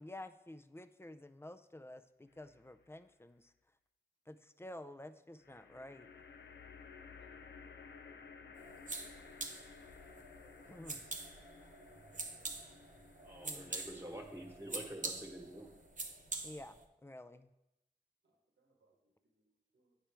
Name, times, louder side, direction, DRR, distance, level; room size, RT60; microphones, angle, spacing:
voice 1, 0.0-3.5 4.3-6.1 10.7-11.0 13.4-13.7 16.4-17.5, left 1 dB, 15° left, 10 dB, 0.4 m, -51 dB
sound 1, 2.3-2.9 5.4-16.8, left 5 dB, 75° left, 0.6 m, -57 dB
sound 2, 8.6-16.8, right 3 dB, 45° right, 0.9 m, -46 dB
voice 2, 12.0-12.8 18.2-20.0, right 4 dB, 90° right, 2 dB, 1.1 m, -75 dB
voice 3, 13.2-15.7, right 1 dB, 15° right, 2 dB, 1.4 m, -47 dB
8.8 x 4.3 x 3.4 m, 0.91 s
cardioid pair, 40°, 18 cm